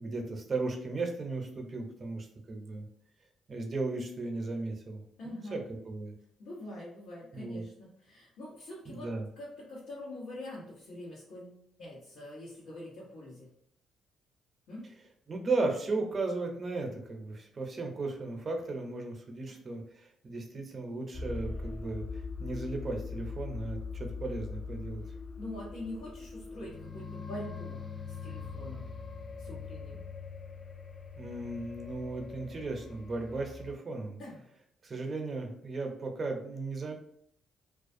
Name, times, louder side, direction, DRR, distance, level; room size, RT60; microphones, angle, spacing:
voice 1, 0.0-2.9 3.5-6.1 7.3-7.6 8.9-9.3 15.3-25.0 31.2-34.2 34.8-36.9, right 3 dB, 40° right, 3 dB, 0.6 m, -36 dB
voice 2, 5.2-5.6 6.4-9.1 9.4-13.5 14.7-14.8 25.4-27.9 28.2-28.8 29.4-30.0 34.2-34.4, left 1 dB, 90° left, -10 dB, 1.0 m, -44 dB
sound 1, 21.1-33.7, left 4 dB, 30° left, 0.3 m, -42 dB
2.4 x 2.2 x 2.6 m, 0.69 s
cardioid pair, 90°, 0 cm